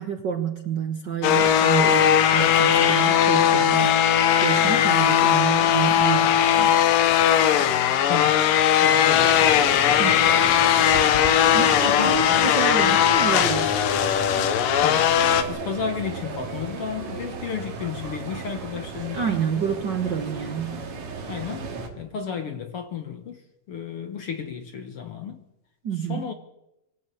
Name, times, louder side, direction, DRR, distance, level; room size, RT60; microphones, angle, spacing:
voice 1, 0.0-4.0 4.4-6.9 10.0-10.3 11.5-13.8 19.1-20.8 25.8-26.3, right 7 dB, 70° right, 1.0 m, -29 dB
sound 1, 1.2-15.4, left 9 dB, 90° left, 2.8 m, -19 dB
voice 2, 8.1-8.4 8.8-10.0 11.8-12.5 14.8-15.1 15.5-19.4 20.4-20.8 21.3-21.7 22.0-23.4 23.7-25.4 26.1-26.3, left 6 dB, 55° left, 1.7 m, -33 dB
sound 2, 9.1-21.9, right 4 dB, 55° right, 3.5 m, -34 dB
24.5 x 13.5 x 8.4 m
omnidirectional pair, 3.8 m